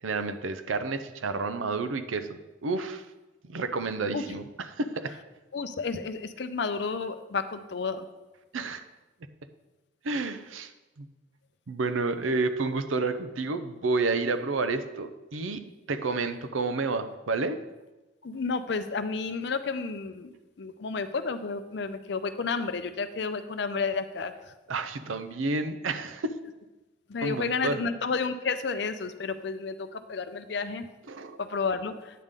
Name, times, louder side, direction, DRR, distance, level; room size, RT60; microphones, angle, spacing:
voice 1, 0.0-3.0 3.4-5.1 8.5-8.8 10.0-10.7 11.0-11.1 11.7-15.6 15.9-17.6 24.7-26.4 27.2-27.9 31.1-31.4, right 3 dB, 90° right, 10 dB, 0.6 m, -30 dB
voice 2, 5.5-8.1 18.2-20.3 20.6-24.3 27.1-30.9 31.4-31.9, left 4 dB, 60° left, 10 dB, 0.5 m, -31 dB
9.3 x 3.6 x 6.6 m, 1.1 s
head